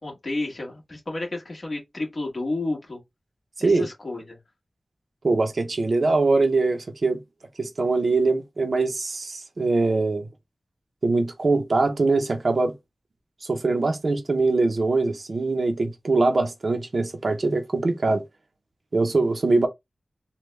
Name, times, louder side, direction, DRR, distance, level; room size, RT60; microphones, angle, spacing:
voice 1, 0.0-3.0 3.6-4.4, left 2 dB, 50° left, 1.5 m, -31 dB
voice 2, 3.6-3.9 5.2-7.2 7.6-10.3 11.0-12.7 13.5-18.2 18.9-19.7, right 3 dB, 60° right, 0.7 m, -22 dB
3.4 x 2.2 x 3.1 m
wide cardioid pair, 95°, 0 cm